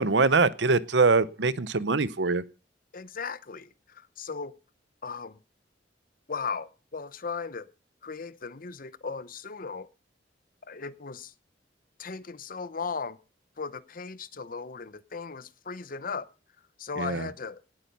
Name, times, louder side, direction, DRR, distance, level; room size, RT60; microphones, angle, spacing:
voice 1, 0.0-2.4 17.0-17.3, right 4 dB, 70° right, 0.8 m, -23 dB
voice 2, 2.9-4.5 5.0-5.4 6.3-7.7 8.0-9.9 10.7-11.3 12.0-13.2 13.6-16.3 16.8-17.6, left 5 dB, 50° left, 0.9 m, -37 dB
18.5 x 8.8 x 5.3 m
head